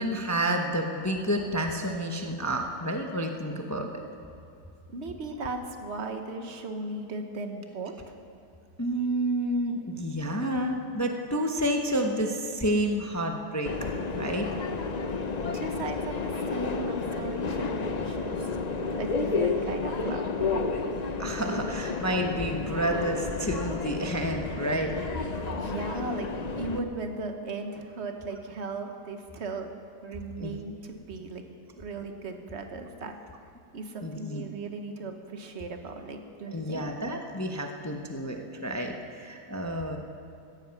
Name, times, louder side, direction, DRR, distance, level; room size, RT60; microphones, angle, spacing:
voice 1, 0.0-4.0 8.8-13.7 14.2-14.5 21.2-24.9 30.4-30.5 34.0-34.4 36.5-40.0, right 1 dB, 15° left, 3 dB, 0.6 m, -29 dB
voice 2, 4.9-8.1 15.5-18.6 19.0-20.7 25.5-29.7 30.0-31.4 31.8-33.1 33.7-36.9, right 3 dB, 45° right, 5 dB, 1.3 m, -37 dB
Subway metro underground, 13.7-26.8, left 4 dB, 90° left, 0.3 m, -31 dB
16.0 x 14.0 x 5.8 m, 2.6 s
omnidirectional pair, 1.9 m